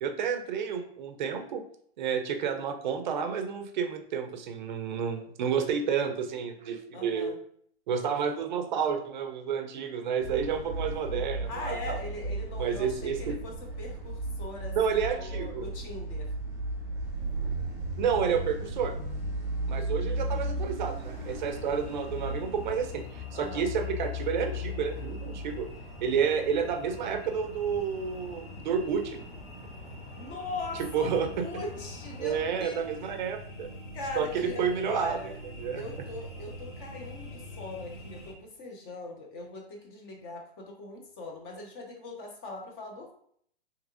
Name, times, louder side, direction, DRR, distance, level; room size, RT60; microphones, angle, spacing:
voice 1, 0.0-1.6 2.0-7.4 7.9-12.0 12.6-13.4 14.8-15.7 18.0-19.0 19.7-25.7 26.0-29.2 30.7-31.6 32.2-33.7 34.2-35.2 35.6-35.8, right 7 dB, 45° right, 7 dB, 0.5 m, -30 dB
voice 2, 6.9-7.4 10.5-10.6 11.5-16.3 23.3-23.7 30.1-32.9 33.9-35.3 35.7-43.1, left 2 dB, 20° left, 1 dB, 0.4 m, -41 dB
sound 1, 10.2-22.9, right 2 dB, 10° right, 0.9 m, -35 dB
sound 2, 21.0-32.5, left 6 dB, 85° left, 1.3 m, -42 dB
sound 3, 21.4-38.3, equal, 50° left, 1.1 m, -46 dB
3.4 x 2.8 x 2.5 m, 0.63 s
hypercardioid pair, 130°, 32 cm